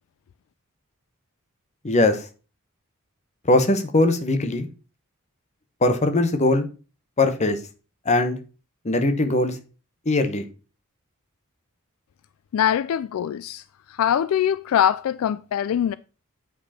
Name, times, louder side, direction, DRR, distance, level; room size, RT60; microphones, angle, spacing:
voice 1, 1.8-2.3 3.5-4.7 5.8-6.7 7.2-7.6 8.0-8.4 8.8-9.6 10.0-10.5, left 2 dB, 35° left, 1.0 m, -20 dB
voice 2, 12.5-13.6 14.0-15.9, left 9 dB, 70° left, 0.3 m, -22 dB
8.1 x 5.1 x 4.2 m
head